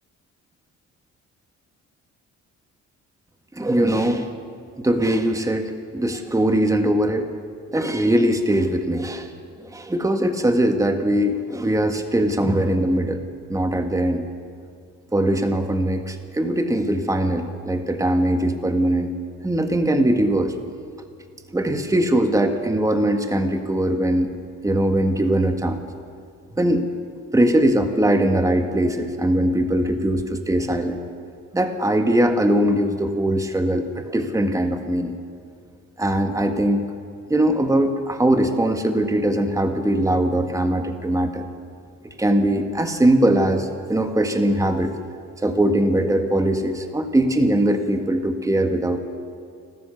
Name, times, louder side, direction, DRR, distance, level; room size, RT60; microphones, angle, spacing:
voice 1, 3.5-4.3 4.8-7.3 7.7-9.3 9.6-13.2 13.5-14.2 15.1-19.1 19.4-20.5 21.5-24.3 24.6-25.8 26.6-26.9 27.3-31.0 31.5-35.1 36.0-36.9 37.3-41.5 42.0-44.9 45.4-49.0, right 1 dB, 10° right, 6 dB, 1.7 m, -21 dB
28.5 x 13.5 x 7.0 m, 2.4 s
cardioid pair, 90°, 30 cm